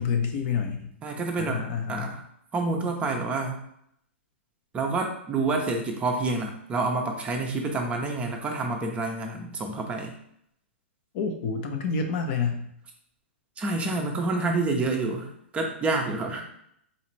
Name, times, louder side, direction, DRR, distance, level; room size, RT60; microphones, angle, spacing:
voice 1, 0.0-0.9 1.4-2.1 11.1-12.7, left 5 dB, 45° left, 4 dB, 0.6 m, -28 dB
voice 2, 1.0-2.2 2.5-3.6 4.7-10.1 13.6-16.4, right 3 dB, 20° right, 2 dB, 0.6 m, -28 dB
4.0 x 2.4 x 3.1 m, 0.71 s
hypercardioid pair, 125°, 7 cm